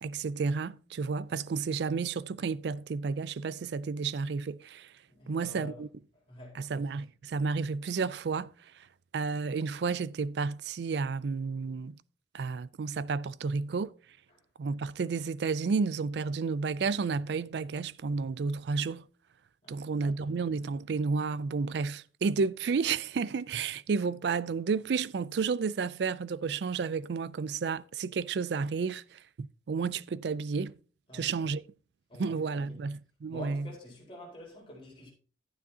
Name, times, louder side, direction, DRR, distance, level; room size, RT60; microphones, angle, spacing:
voice 1, 0.0-4.9 5.3-5.9 6.5-8.5 9.1-12.0 12.3-13.9 14.6-19.0 19.7-30.7 31.1-31.6 32.2-33.7, right 5 dB, 70° right, 0.4 m, -31 dB
voice 2, 5.1-5.8 6.3-6.7 19.6-20.5 31.1-31.5 32.1-32.8 33.3-35.1, left 1 dB, 30° left, 4.3 m, -48 dB
12.0 x 9.5 x 2.8 m
head